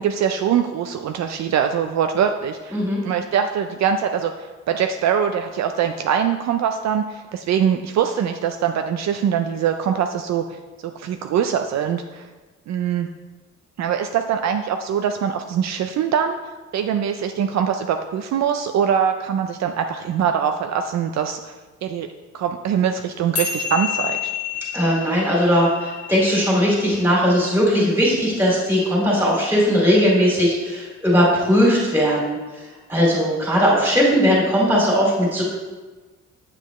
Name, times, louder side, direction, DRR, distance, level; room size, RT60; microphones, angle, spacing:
voice 1, 0.0-2.8 3.0-10.5 10.8-12.3 12.7-13.1 13.8-16.4 16.7-21.5 21.8-22.1 22.3-24.3, right 8 dB, 65° right, 6 dB, 0.5 m, -23 dB
sound 1, 23.4-29.9, left 7 dB, 75° left, 2.0 m, -31 dB
voice 2, 24.7-32.4 32.9-35.4, equal, 5° right, -5 dB, 2.5 m, -18 dB
9.0 x 7.6 x 3.1 m, 1.3 s
wide cardioid pair, 170°, 30 cm